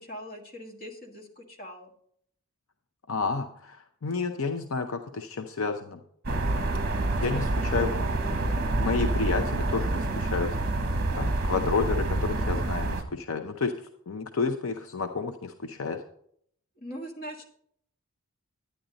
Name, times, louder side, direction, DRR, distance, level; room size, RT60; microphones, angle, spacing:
voice 1, 0.0-1.9 7.3-8.4 16.8-17.5, equal, 40° left, 1 dB, 1.7 m, -41 dB
voice 2, 3.1-6.0 7.2-8.0 8.8-10.5 11.1-13.7 14.1-16.0, left 4 dB, 70° left, 6 dB, 0.6 m, -30 dB
sound 1, 6.2-13.0, right 2 dB, 45° right, 1.1 m, -27 dB
10.0 x 10.0 x 3.9 m, 0.66 s
head